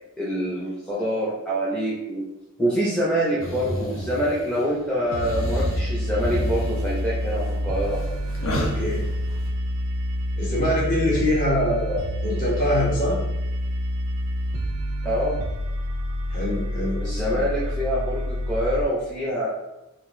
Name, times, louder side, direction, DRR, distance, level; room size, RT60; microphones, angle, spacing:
voice 1, 0.2-2.3 2.6-8.0 11.9-12.0 15.0-15.4 17.0-19.5, equal, 5° left, -8 dB, 0.5 m, -25 dB
sound 1, 3.4-4.7 5.1-9.5, left 1 dB, 65° left, 0.7 m, -31 dB
sound 2, 5.1-18.8, equal, 85° right, 0.4 m, -28 dB
voice 2, 8.5-9.0 10.4-13.2 16.3-17.0 17.3-17.4, left 1 dB, 40° left, -6 dB, 1.1 m, -24 dB
3.8 x 2.5 x 2.6 m, 0.97 s
head